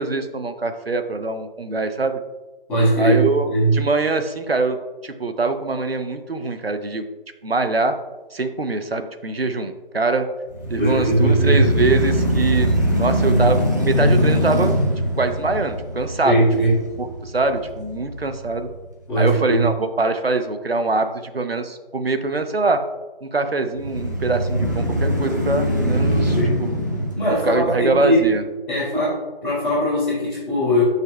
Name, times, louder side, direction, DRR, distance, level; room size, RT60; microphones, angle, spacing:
voice 1, 0.0-2.2 3.0-4.8 5.0-7.0 7.4-7.9 8.3-10.3 10.7-14.7 15.2-16.3 17.0-18.7 19.2-22.8 23.2-26.4 27.4-28.4, right 3 dB, 80° right, 8 dB, 0.8 m, -23 dB
voice 2, 2.7-3.7 10.8-11.6 16.2-16.8 19.1-19.6 26.2-26.6 27.1-28.2 28.7-30.8, right 1 dB, 5° left, -17 dB, 1.9 m, -20 dB
sound 1, 10.5-18.6 19.1-19.2 23.7-28.2, equal, 20° right, 0.6 m, -22 dB
9.2 x 5.4 x 2.3 m, 1.2 s
figure-of-eight pair, 155°, 29 cm